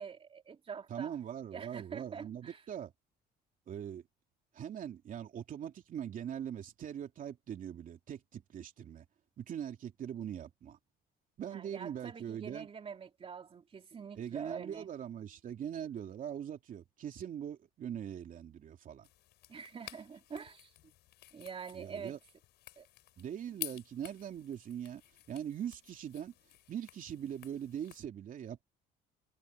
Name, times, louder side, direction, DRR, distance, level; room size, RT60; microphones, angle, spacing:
voice 1, 0.0-1.2 1.5-2.6 11.5-14.9 19.5-20.7 21.3-22.2 22.8-22.9, right 6 dB, 35° right, 3.1 m, -45 dB
voice 2, 0.9-2.9 3.7-4.0 4.5-9.0 9.4-10.8 11.4-12.7 14.1-19.1 21.7-22.2 23.2-25.0 25.3-26.3 26.7-28.6, right 9 dB, 55° right, 3.1 m, -41 dB
sound 1, 19.0-28.0, left 16 dB, 80° left, 5.3 m, -51 dB
cardioid pair, 110°, 17 cm